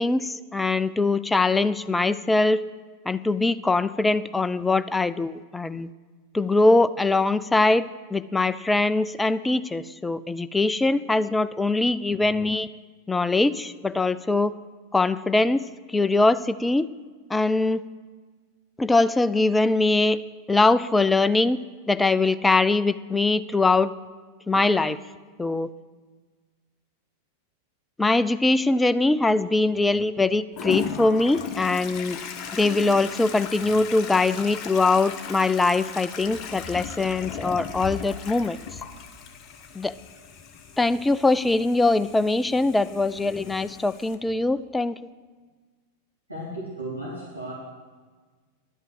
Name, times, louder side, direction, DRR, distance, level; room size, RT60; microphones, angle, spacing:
voice 1, 0.0-2.6 3.1-5.9 6.3-12.7 13.1-14.6 14.9-16.9 17.3-17.8 18.8-20.2 20.5-21.6 21.9-23.9 24.5-25.0 25.4-25.7 28.0-32.2 32.5-38.6 39.7-39.9 40.8-45.0, left 3 dB, 10° left, 14 dB, 0.3 m, -22 dB
Toilet flush, 30.6-44.2, left 7 dB, 35° left, 0.9 m, -37 dB
voice 2, 46.3-47.5, right 1 dB, 85° right, -6 dB, 2.1 m, -34 dB
10.5 x 5.5 x 7.6 m, 1.4 s
figure-of-eight pair, 90°, 0 cm